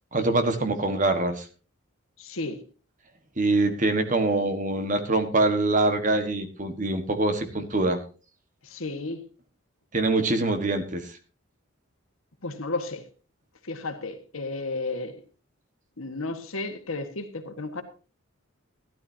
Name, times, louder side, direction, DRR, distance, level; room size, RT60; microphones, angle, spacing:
voice 1, 0.1-1.4 3.4-8.0 9.9-11.1, right 2 dB, 40° right, 1.5 m, -24 dB
voice 2, 2.2-2.6 8.6-9.2 12.4-13.0 13.6-15.1 16.0-17.8, left 2 dB, 80° left, 1.7 m, -33 dB
16.0 x 12.0 x 2.8 m
head